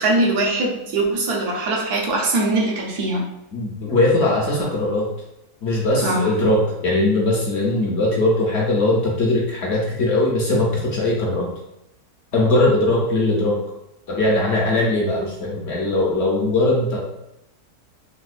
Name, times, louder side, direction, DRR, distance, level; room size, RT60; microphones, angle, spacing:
voice 1, 0.0-3.2 6.0-6.3, right 2 dB, 80° right, -2 dB, 1.3 m, -21 dB
voice 2, 3.5-5.1 5.6-11.5 12.3-13.6 14.1-17.0, left 2 dB, 55° left, -3 dB, 0.8 m, -20 dB
4.2 x 2.2 x 2.4 m, 0.86 s
omnidirectional pair, 1.6 m